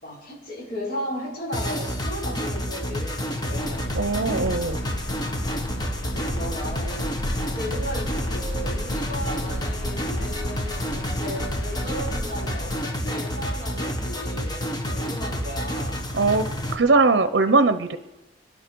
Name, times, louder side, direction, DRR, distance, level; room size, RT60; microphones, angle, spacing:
voice 1, 0.0-3.9 6.1-7.1 7.4-16.0, equal, 50° left, -4 dB, 4.9 m, -35 dB
sound 1, 1.5-16.7, equal, 20° left, 1.4 m, -29 dB
sound 2, 3.5-12.8, left 1 dB, 85° left, 1.1 m, -34 dB
voice 2, 3.9-4.8 16.1-16.5 16.7-18.0, right 3 dB, 65° right, 11 dB, 0.7 m, -20 dB
25.5 x 11.0 x 4.7 m, 1.0 s
head